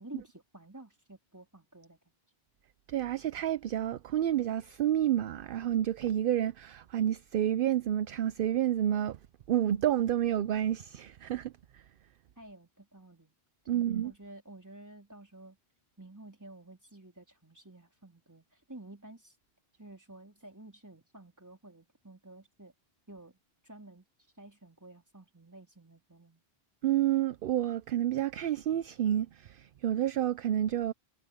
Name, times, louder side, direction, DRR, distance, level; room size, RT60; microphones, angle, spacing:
voice 1, 0.0-2.0 12.4-13.4 13.7-15.6 16.0-19.4 19.8-22.7 23.1-23.4 23.6-24.1 24.4-26.4, right 2 dB, 15° right, 4.0 m, -51 dB
voice 2, 2.9-9.2 9.5-11.8 13.7-14.1 26.8-30.9, right 11 dB, 65° right, 0.7 m, -29 dB
omnidirectional pair, 1.1 m